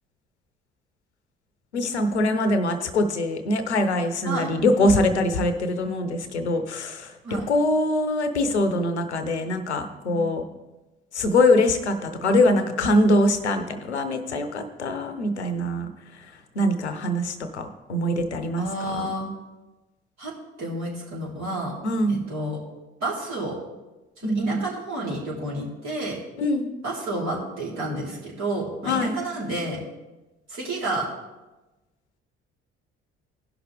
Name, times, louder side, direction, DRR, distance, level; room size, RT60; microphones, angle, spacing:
voice 1, 1.7-10.4 11.1-15.9 16.6-18.7 18.9-19.1 21.8-22.2 24.2-24.6 26.4-26.7 28.9-29.2, left 1 dB, 90° left, 8 dB, 0.7 m, -23 dB
voice 2, 18.6-19.3 20.2-20.3 20.6-21.7 22.1-22.6 23.0-23.6 24.2-26.2 26.8-29.8 30.5-31.1, right 1 dB, 55° right, -5 dB, 3.6 m, -30 dB
16.0 x 5.9 x 3.3 m, 1.1 s
figure-of-eight pair, 50°, 33 cm